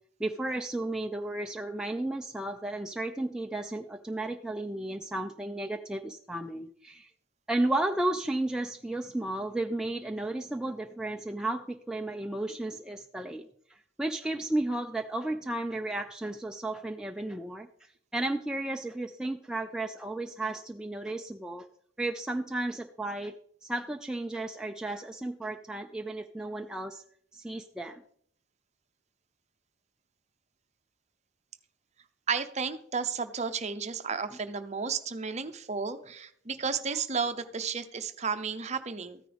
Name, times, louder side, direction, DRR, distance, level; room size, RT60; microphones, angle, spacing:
voice 1, 0.2-7.1 7.5-13.4 14.0-17.7 18.1-21.7 22.0-23.3 23.6-27.0 27.3-28.0, right 2 dB, 5° right, 3 dB, 0.4 m, -33 dB
voice 2, 32.3-39.2, right 5 dB, 35° right, 10 dB, 0.7 m, -33 dB
14.0 x 9.9 x 3.4 m, 0.64 s
head